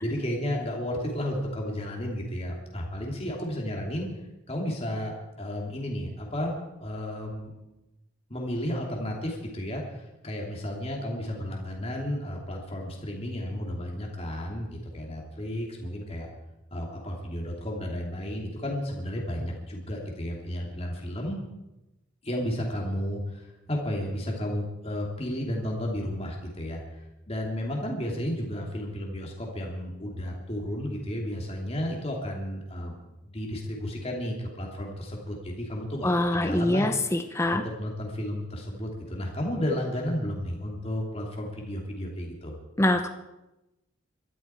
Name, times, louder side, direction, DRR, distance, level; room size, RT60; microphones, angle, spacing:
voice 1, 0.0-4.1 4.5-6.5 6.8-7.5 8.3-16.3 16.7-21.4 22.2-32.9 33.3-36.9 37.5-42.5, equal, 30° left, -1 dB, 2.9 m, -33 dB
voice 2, 36.0-37.6 42.8-43.1, left 1 dB, 15° left, 6 dB, 0.8 m, -24 dB
22.5 x 13.0 x 4.5 m, 0.99 s
head